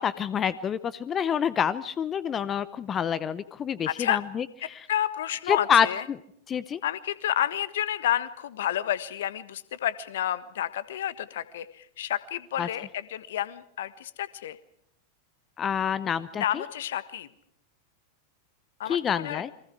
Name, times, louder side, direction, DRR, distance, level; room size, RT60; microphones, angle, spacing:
voice 1, 0.0-4.9 5.5-6.2 6.5-6.8 12.6-12.7 15.6-16.6 18.9-19.5, left 8 dB, 25° left, 17 dB, 0.9 m, -27 dB
voice 2, 3.9-4.2 4.6-6.0 6.8-14.6 16.3-17.3 18.8-19.4, left 11 dB, 60° left, 16 dB, 1.4 m, -30 dB
29.5 x 23.5 x 4.7 m, 0.70 s
figure-of-eight pair, 90°, 0 cm